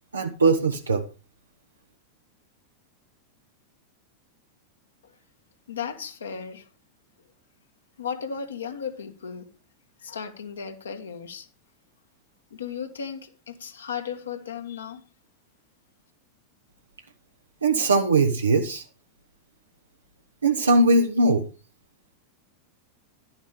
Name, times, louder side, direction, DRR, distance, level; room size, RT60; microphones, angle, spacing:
voice 1, 0.1-1.0 17.6-18.8 20.4-21.5, right 3 dB, 75° right, 1.2 m, -20 dB
voice 2, 5.7-6.7 8.0-9.5 10.0-11.5 12.5-15.0, left 7 dB, 70° left, 1.9 m, -35 dB
12.0 x 9.5 x 5.1 m
figure-of-eight pair, 90°, 0 cm